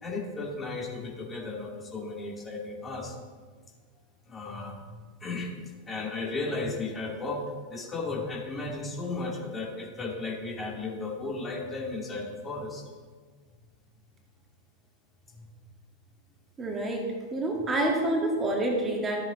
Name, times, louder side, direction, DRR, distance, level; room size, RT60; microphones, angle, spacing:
voice 1, 0.0-3.2 4.3-5.5 5.9-7.4 7.7-12.8 15.3-15.5, left 3 dB, 15° left, -1 dB, 2.2 m, -35 dB
voice 2, 16.6-19.2, right 1 dB, 20° right, 0 dB, 1.8 m, -28 dB
13.5 x 7.7 x 4.1 m, 1.5 s
figure-of-eight pair, 90°, 0 cm